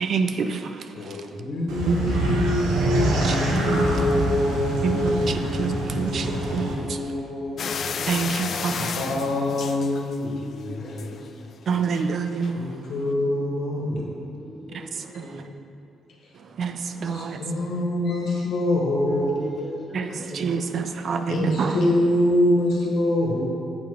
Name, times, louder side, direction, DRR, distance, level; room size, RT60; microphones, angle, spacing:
voice 1, 0.0-1.3 1.9-2.0 3.2-3.4 3.7-3.9 4.8-7.0 8.1-9.1 11.7-12.9 14.7-15.5 16.5-17.4 19.9-21.8, right 5 dB, 55° right, 8 dB, 0.4 m, -28 dB
voice 2, 0.9-8.1 8.7-11.2 12.6-14.0 17.0-19.3 21.3-23.4, left 1 dB, 80° left, -2 dB, 1.5 m, -25 dB
sound 1, 1.7-6.7, right 1 dB, 90° right, 1.1 m, -25 dB
voice 3, 1.8-2.2 5.6-5.8 10.8-11.4 13.8-15.6 19.1-20.7, equal, 5° left, -4 dB, 1.6 m, -40 dB
sound 2, 7.6-10.4 10.8-11.3 11.9-12.1 12.4-12.5, left 6 dB, 55° left, 0.4 m, -32 dB
8.0 x 4.5 x 4.9 m, 2.6 s
cardioid pair, 90°, 0 cm